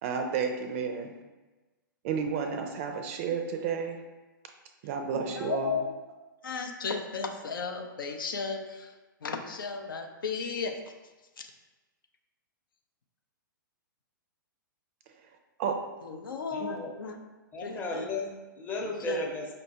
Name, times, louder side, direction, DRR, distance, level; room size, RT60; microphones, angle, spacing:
voice 1, 0.0-1.1 2.0-4.0 4.8-5.8 15.6-15.8 16.6-16.8, right 6 dB, 40° right, 5 dB, 0.4 m, -31 dB
voice 2, 5.1-5.8 6.4-8.9 9.2-10.7 16.1-17.2 17.6-18.1 19.1-19.2, left 5 dB, 75° left, 4 dB, 0.5 m, -34 dB
voice 3, 16.5-16.9 17.5-19.5, left 2 dB, 15° left, -2 dB, 0.7 m, -35 dB
5.1 x 2.2 x 2.8 m, 1.2 s
figure-of-eight pair, 115°, 11 cm